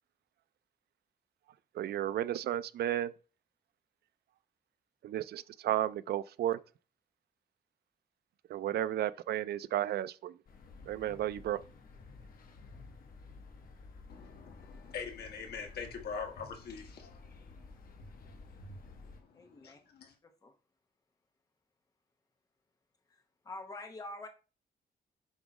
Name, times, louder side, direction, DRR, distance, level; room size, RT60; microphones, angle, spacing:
voice 1, 1.7-3.1 5.0-6.6 8.5-10.4 10.9-11.6, right 12 dB, 90° right, 0.4 m, -33 dB
sound 1, 10.5-19.2, left 3 dB, 65° left, 1.2 m, -52 dB
voice 2, 14.1-20.2, left 6 dB, 85° left, 1.4 m, -45 dB
voice 3, 19.3-19.8 20.2-20.5 23.1-24.3, left 2 dB, 20° left, 0.9 m, -46 dB
7.2 x 3.0 x 5.0 m
wide cardioid pair, 175°, 16 cm